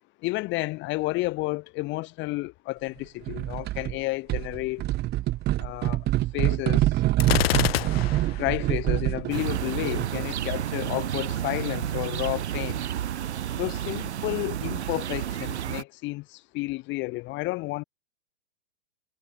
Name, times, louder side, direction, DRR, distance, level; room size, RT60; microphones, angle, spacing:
voice 1, 0.2-4.9 5.6-6.1 6.3-7.0 8.3-12.8 13.6-17.8, left 21 dB, 30° left, 4.1 m, -31 dB
sound 1, 3.3-4.0 4.3-10.3, right 16 dB, 30° right, 4.4 m, -26 dB
Gunshot gunfire, 7.2-8.4, left 14 dB, 55° left, 2.1 m, -26 dB
sound 2, 9.3-15.8, right 10 dB, 70° right, 2.6 m, -31 dB
hypercardioid pair, 135°, 35 cm